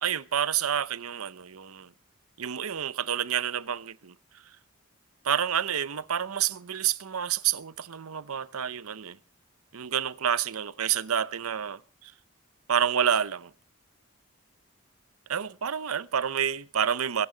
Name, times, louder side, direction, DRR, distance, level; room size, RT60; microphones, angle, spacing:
voice 1, 0.0-1.9 2.4-4.1 5.2-9.2 9.7-12.1 12.7-13.5 15.3-17.3, right 8 dB, 90° right, 0.7 m, -29 dB
23.0 x 12.0 x 3.9 m
head